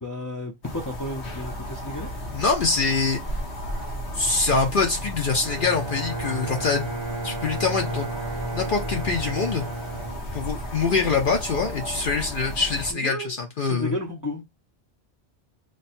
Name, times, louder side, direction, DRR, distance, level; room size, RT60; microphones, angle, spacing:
voice 1, 0.0-2.1 12.9-14.4, left 1 dB, 25° left, 0.5 m, -33 dB
sound 1, 0.6-12.9, equal, 80° left, 1.3 m, -34 dB
voice 2, 2.3-3.2 4.1-6.9 7.2-8.1 8.5-9.6 10.3-13.9, left 4 dB, 55° left, 0.8 m, -24 dB
Bowed string instrument, 5.4-10.9, right 2 dB, 25° right, 0.8 m, -33 dB
3.3 x 2.2 x 4.2 m
omnidirectional pair, 1.1 m